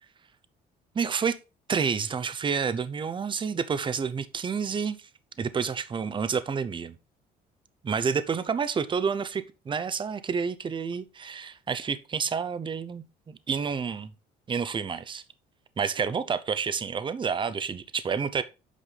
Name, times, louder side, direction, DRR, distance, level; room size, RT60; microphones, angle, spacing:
voice 1, 0.9-1.4 1.7-5.1 5.4-7.0 7.8-14.1 14.5-15.2 15.8-18.4, right 6 dB, 30° right, 0.8 m, -29 dB
8.4 x 5.5 x 3.9 m
cardioid pair, 110°, 17 cm